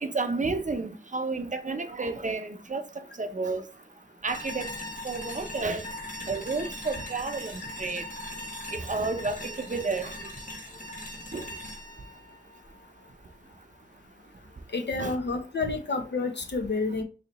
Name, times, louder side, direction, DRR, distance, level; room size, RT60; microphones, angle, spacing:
voice 1, 0.0-2.9 3.2-3.6 4.2-4.7 5.0-5.8 6.3-8.0 8.7-10.1 11.3-11.5 15.0-15.2, right 3 dB, 45° right, 0.6 m, -31 dB
sound 1, 4.3-13.3, left 1 dB, 45° left, 1.5 m, -40 dB
voice 2, 14.7-17.0, left 3 dB, 70° left, 0.8 m, -29 dB
3.2 x 2.9 x 3.9 m
cardioid pair, 45°, 19 cm